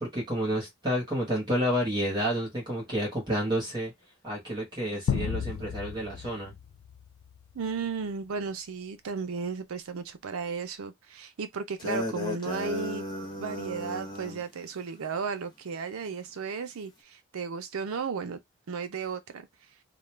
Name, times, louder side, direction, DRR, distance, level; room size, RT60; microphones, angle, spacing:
voice 1, 0.0-3.9 4.2-6.5, equal, 20° right, 1.0 m, -30 dB
sound 1, 5.1-7.6, left 7 dB, 80° left, 0.4 m, -33 dB
voice 2, 7.5-13.0 13.4-18.4 18.7-19.5, right 5 dB, 85° right, 0.5 m, -34 dB
sound 2, 11.8-14.4, left 1 dB, 20° left, 0.6 m, -35 dB
2.3 x 2.2 x 3.1 m
head